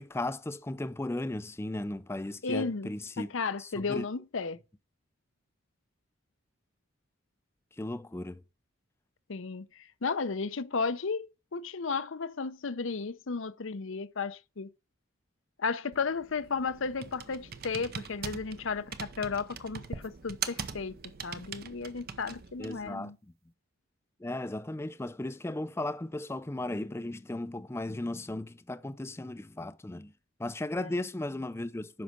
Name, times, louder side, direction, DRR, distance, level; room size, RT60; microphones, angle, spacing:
voice 1, 0.0-3.3 3.6-4.1 7.8-8.4 22.6-23.3 24.2-30.1 30.4-32.0, left 1 dB, 10° left, 0.4 m, -36 dB
voice 2, 2.4-2.9 3.2-4.6 9.3-14.7 15.6-23.2 30.8-31.1, left 4 dB, 65° left, 0.7 m, -34 dB
Computer keyboard, 15.9-22.9, right 6 dB, 50° right, 0.7 m, -42 dB
7.5 x 5.6 x 5.1 m
head